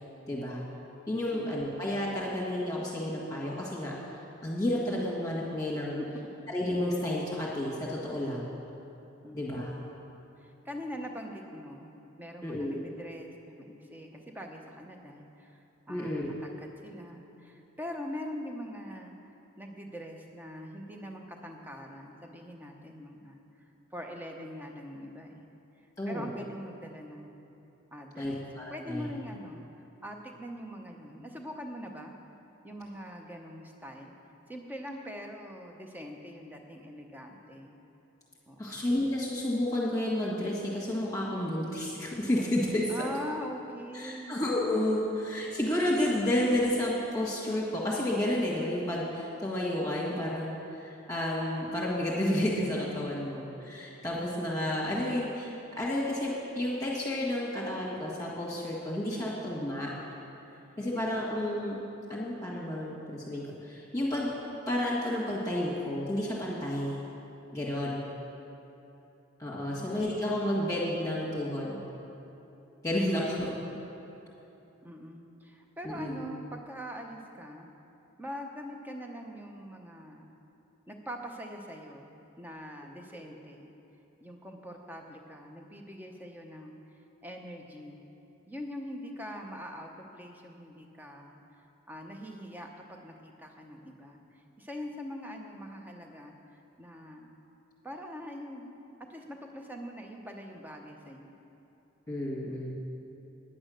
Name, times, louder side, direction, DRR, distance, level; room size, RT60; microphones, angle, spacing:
voice 1, 0.3-0.6 1.1-3.9 4.4-6.0 6.5-8.5 9.3-9.7 12.4-12.8 15.9-16.3 26.0-26.3 28.2-29.1 38.6-42.9 43.9-50.6 50.8-59.9 60.8-61.8 62.1-64.3 64.7-67.0 67.5-68.1 69.4-71.8 72.8-73.6 75.8-76.3 83.3-83.4 102.1-102.8, left 1 dB, 15° left, -7 dB, 1.7 m, -31 dB
voice 2, 9.2-9.8 10.4-11.9 12.2-19.1 19.6-23.4 23.9-25.5 26.1-27.4 27.9-28.4 28.7-29.6 30.0-32.1 32.6-34.1 34.4-37.7 38.5-38.8 42.9-44.4 74.8-77.7 78.2-80.3 80.9-82.1 82.4-83.7 84.2-88.0 88.5-97.3 97.8-98.7 99.1-101.3 102.5-102.6, equal, 10° right, 2 dB, 0.8 m, -43 dB
9.9 x 8.7 x 6.4 m, 3.0 s
head